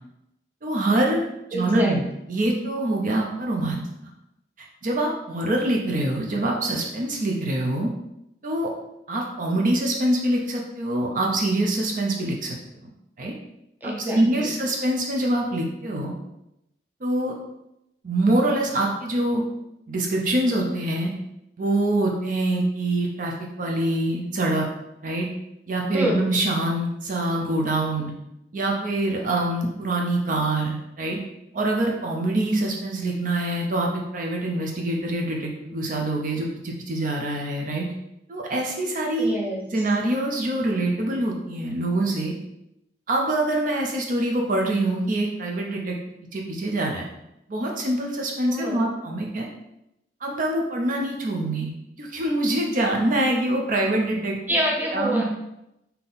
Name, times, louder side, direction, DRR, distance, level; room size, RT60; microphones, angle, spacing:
voice 1, 0.6-2.0 2.3-3.8 4.8-7.9 8.4-8.7 9.1-12.5 13.2-13.3 13.8-16.1 17.0-17.3 18.0-19.4 19.9-21.1 21.6-24.7 25.0-25.3 25.7-28.1 28.5-31.2 31.5-37.9 38.3-39.3 39.7-42.3 43.1-46.0 46.3-47.1 47.5-49.5 50.2-51.7 52.0-54.6 54.9-55.2, right 1 dB, 50° right, 0 dB, 0.6 m, -25 dB
voice 2, 1.5-1.9 13.8-14.5 25.9-26.2 39.2-39.8 48.5-48.9 54.5-55.2, equal, 10° right, -2 dB, 0.7 m, -27 dB
3.6 x 2.8 x 3.9 m, 0.85 s
head